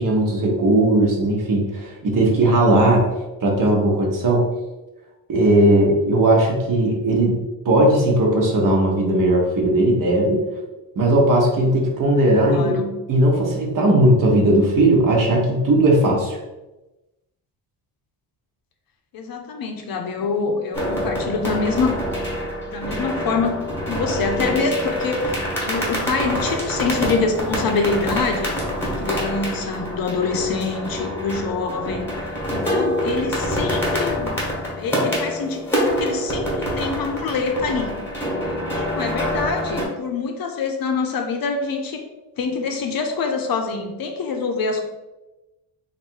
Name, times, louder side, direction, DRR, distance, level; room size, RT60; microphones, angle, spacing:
voice 1, 0.0-3.0 3.4-4.4 5.3-7.4 7.6-10.4 11.0-12.8 13.1-16.4, right 1 dB, 45° right, -1 dB, 1.1 m, -17 dB
voice 2, 12.3-12.9 19.1-22.0 22.7-25.4 25.6-32.0 32.5-34.4 34.8-35.6 36.0-38.0 38.7-42.0 42.4-44.9, left 4 dB, 50° left, 3 dB, 0.6 m, -25 dB
sound 1, 20.7-39.8, equal, 5° left, 1.2 m, -26 dB
3.2 x 2.6 x 4.4 m, 1.0 s
cardioid pair, 140°, 44 cm